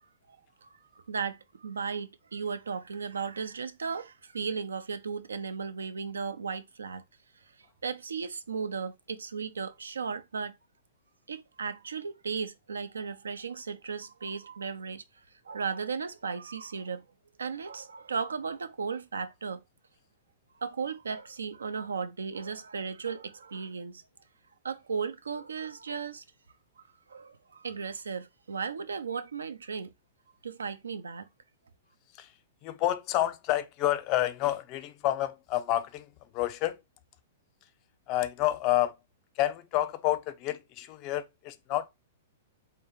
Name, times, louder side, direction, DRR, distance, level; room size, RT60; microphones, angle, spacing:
voice 1, 1.1-7.0 7.8-10.5 11.3-15.0 15.5-17.0 17.4-19.6 20.6-24.0 24.6-26.2 27.1-29.9 30.4-31.3, right 5 dB, 90° right, 0.5 m, -35 dB
voice 2, 32.6-36.8 38.1-39.0 39.4-41.9, left 14 dB, 40° left, 0.5 m, -29 dB
3.5 x 2.8 x 3.4 m
hypercardioid pair, 120°, 0 cm